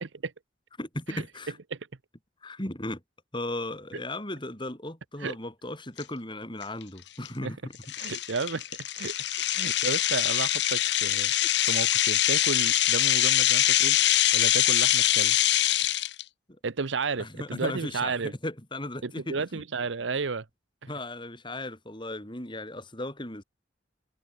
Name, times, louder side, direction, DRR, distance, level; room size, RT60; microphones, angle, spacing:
voice 1, 0.8-1.5 2.4-3.0 3.3-7.7 17.2-18.1 18.4-19.6 20.9-23.4, left 1 dB, 25° left, 4.1 m, -36 dB
sound 1, 6.0-6.1 6.6-6.8 7.3-7.4 7.9-16.2, left 13 dB, 65° left, 1.0 m, -24 dB
voice 2, 8.0-11.3 11.6-15.4 16.6-18.3 19.0-20.5, right 4 dB, 80° right, 0.8 m, -33 dB
head